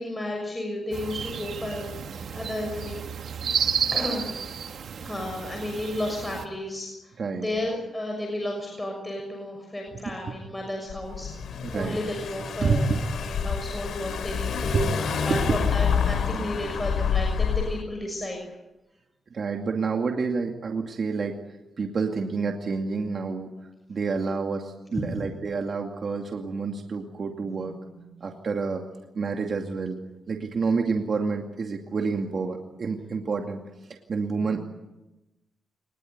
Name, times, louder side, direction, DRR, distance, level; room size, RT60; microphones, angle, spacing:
voice 1, 0.0-2.0 2.3-3.0 3.4-3.5 3.9-4.4 5.0-12.9 13.2-18.5 25.0-25.2, left 1 dB, 15° left, 1 dB, 6.4 m, -33 dB
sound 1, 0.9-6.5, right 7 dB, 70° right, 1.9 m, -31 dB
voice 2, 7.2-7.5 9.9-10.0 10.3-10.4 11.6-12.1 12.6-13.0 14.7-14.9 15.3-15.6 19.3-23.5 23.9-28.8 29.1-30.0 30.3-34.6, right 4 dB, 50° right, 3 dB, 2.5 m, -28 dB
Car / Engine, 10.9-17.8, left 7 dB, 75° left, 2.8 m, -28 dB
23.5 x 21.0 x 9.7 m, 1.0 s
cardioid pair, 105°, 0 cm